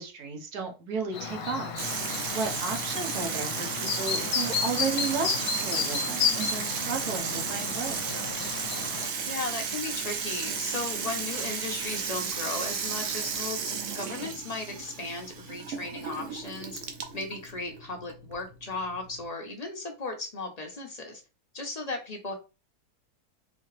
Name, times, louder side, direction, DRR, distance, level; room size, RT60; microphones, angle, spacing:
voice 1, 0.0-8.0, right 5 dB, 80° right, 4 dB, 1.5 m, -34 dB
Chirp tweet, 1.1-9.1, left 6 dB, 70° left, 1.1 m, -32 dB
Water tap faucet / Sink (filling or washing), 1.8-19.2, right 6 dB, 65° right, 0.9 m, -34 dB
voice 2, 2.9-3.3 9.3-16.8 17.1-21.2 21.5-22.3, left 3 dB, 40° left, 2 dB, 0.5 m, -36 dB
4.1 x 2.8 x 3.1 m, 0.30 s
omnidirectional pair, 1.6 m